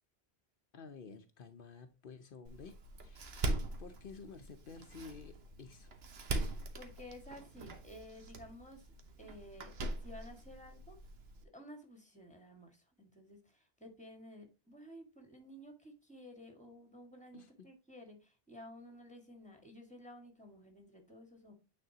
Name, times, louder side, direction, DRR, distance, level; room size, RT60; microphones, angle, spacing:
voice 1, 0.7-3.4 3.8-5.9 17.3-17.7, left 5 dB, 60° left, 0.8 m, -52 dB
Door, 2.4-11.4, right 2 dB, 80° right, 1.2 m, -42 dB
voice 2, 6.3-8.9 9.2-9.8 10.0-11.0 11.4-21.5, equal, 5° left, 1.8 m, -54 dB
9.1 x 4.2 x 2.8 m
omnidirectional pair, 1.0 m